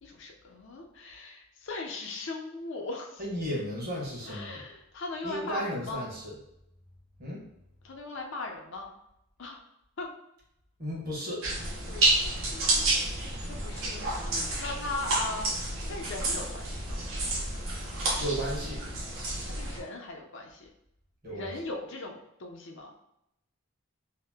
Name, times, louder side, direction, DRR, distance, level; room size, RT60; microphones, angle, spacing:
voice 1, 0.0-3.2 4.2-6.1 7.8-8.9 9.4-9.6 10.0-10.1 11.9-15.4 15.8-17.0 19.6-20.7 21.3-22.9, left 2 dB, 55° left, 2 dB, 0.5 m, -39 dB
voice 2, 3.2-4.6 5.2-6.3 7.2-7.4 10.8-11.4 18.2-18.8 21.2-21.5, equal, 45° right, -4 dB, 1.0 m, -34 dB
sound 1, 11.4-19.8, right 2 dB, 70° right, 0.7 m, -30 dB
2.7 x 2.0 x 3.4 m, 0.80 s
head